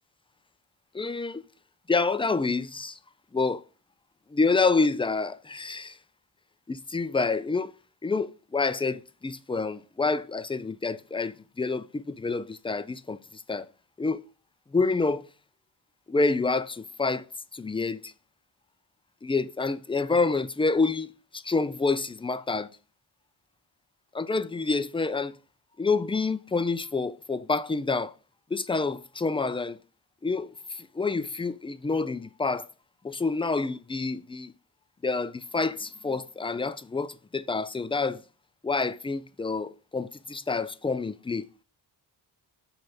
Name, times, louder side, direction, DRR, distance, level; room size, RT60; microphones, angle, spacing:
voice 1, 0.9-1.4 1.9-3.0 3.3-3.6 4.3-6.0 6.7-7.7 8.0-13.7 14.0-14.2 14.7-15.3 16.1-17.3 17.5-18.1 19.2-22.7 24.1-25.4 25.8-28.1 28.5-29.8 30.2-32.7 33.0-34.5 35.0-38.2 38.6-41.5, left 3 dB, 10° left, 0.3 m, -28 dB
7.0 x 3.4 x 5.4 m
cardioid pair, 70°, 47 cm